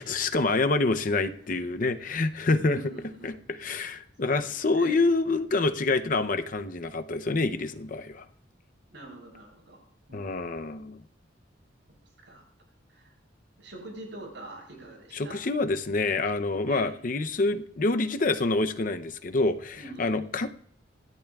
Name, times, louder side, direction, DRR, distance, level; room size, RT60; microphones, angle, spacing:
voice 1, 0.0-2.8 3.2-8.3 10.1-11.0 15.1-20.6, left 3 dB, 45° left, 0.6 m, -27 dB
voice 2, 2.5-3.5 4.2-5.0 8.9-9.8 10.1-10.3 12.2-12.4 12.9-13.2 13.6-15.4 16.7-16.9 19.8-20.3, right 2 dB, 70° right, 7.8 m, -44 dB
27.5 x 12.0 x 2.3 m
head